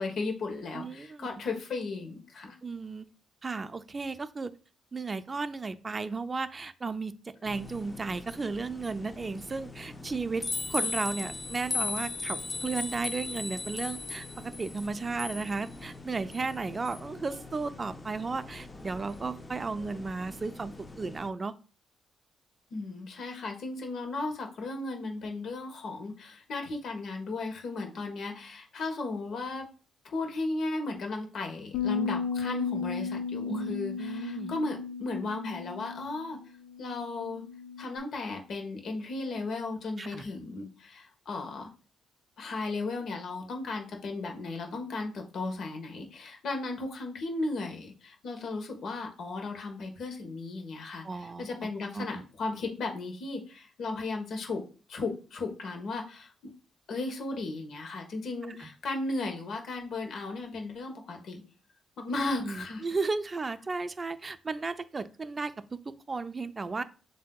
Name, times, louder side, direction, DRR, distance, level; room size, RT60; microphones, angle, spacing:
voice 1, 0.0-2.6 22.7-29.7 30.0-36.4 36.8-37.4 37.8-41.7 42.4-54.6 54.9-56.5 56.9-61.4 62.0-62.8, left 3 dB, 65° left, 3 dB, 1.2 m, -35 dB
voice 2, 0.7-1.3 2.6-3.1 3.4-4.5 4.9-21.5 33.5-34.5 40.0-40.2 51.0-51.5 51.9-52.1 58.5-58.7 62.4-66.8, right 4 dB, 30° right, 13 dB, 0.4 m, -34 dB
sound 1, 7.5-21.3, left 3 dB, 20° left, 0.5 m, -39 dB
sound 2, 31.7-38.0, left 5 dB, 90° left, 0.4 m, -35 dB
7.2 x 2.7 x 2.3 m, 0.37 s
cardioid pair, 90°, 0 cm